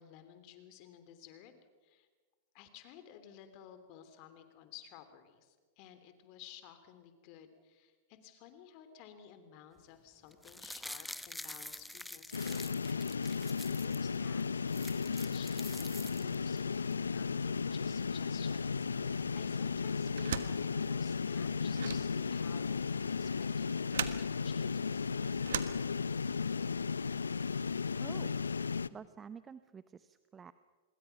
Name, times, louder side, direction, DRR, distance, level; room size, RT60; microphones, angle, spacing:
voice 1, 0.0-1.5 1.8-2.1 2.5-25.1, left 10 dB, 45° left, 9 dB, 3.1 m, -55 dB
sound 1, 10.3-14.0 14.4-14.5 14.7-16.6 16.9-17.0, left 1 dB, 5° left, 1.0 m, -47 dB
sound 2, 12.3-28.9, left 5 dB, 85° left, 0.6 m, -35 dB
sound 3, 20.1-26.4, right 9 dB, 70° right, 1.4 m, -41 dB
voice 2, 28.0-28.4 28.9-30.5, right 6 dB, 20° right, 14 dB, 0.7 m, -49 dB
26.0 x 21.5 x 5.9 m, 1.4 s
hypercardioid pair, 100°, 0 cm